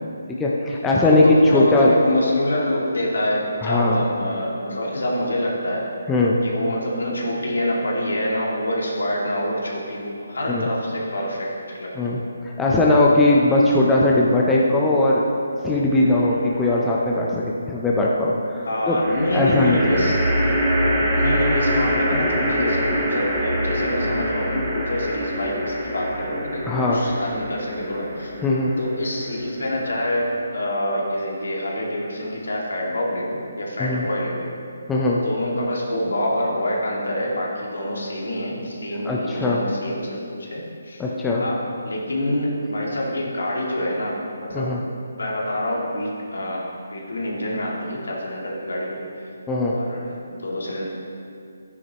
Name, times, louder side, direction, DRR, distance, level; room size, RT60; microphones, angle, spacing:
voice 1, 0.4-1.3 1.5-1.9 3.6-4.0 6.1-6.4 10.5-10.7 11.9-15.2 15.6-19.0 19.3-19.8 26.7-27.0 28.4-28.7 33.8-34.0 34.9-35.2 39.0-39.6 41.0-41.4 44.5-44.8 49.5-49.8, left 2 dB, 10° left, -4 dB, 0.8 m, -19 dB
voice 2, 1.0-5.8 6.4-12.3 18.6-20.6 21.2-28.3 28.8-30.3 30.5-34.5 35.2-41.0 41.4-44.7 45.1-49.3 49.7-50.9, left 1 dB, 70° left, -3 dB, 2.5 m, -26 dB
sound 1, 15.9-16.5 19.0-30.4, equal, 15° right, 1.4 m, -25 dB
12.5 x 9.8 x 3.1 m, 2.4 s
figure-of-eight pair, 145°, 0 cm